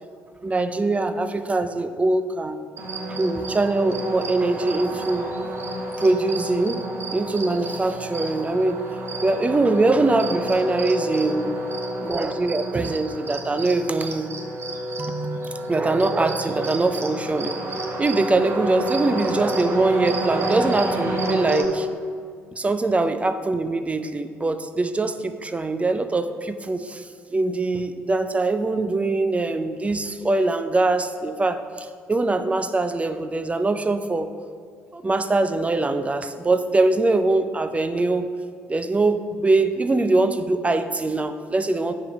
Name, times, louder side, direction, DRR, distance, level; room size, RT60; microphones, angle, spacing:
voice 1, 0.4-2.7 3.2-5.3 6.0-6.8 7.1-8.8 9.2-11.6 12.0-14.3 15.0-17.6 18.0-21.9 22.6-27.1 27.3-34.3 34.9-38.3 38.7-41.9, right 2 dB, 20° right, 10 dB, 0.5 m, -23 dB
sound 1, 2.8-21.7, right 1 dB, 40° right, 1.1 m, -29 dB
7.6 x 5.7 x 4.6 m, 2.1 s
figure-of-eight pair, 50°, 6 cm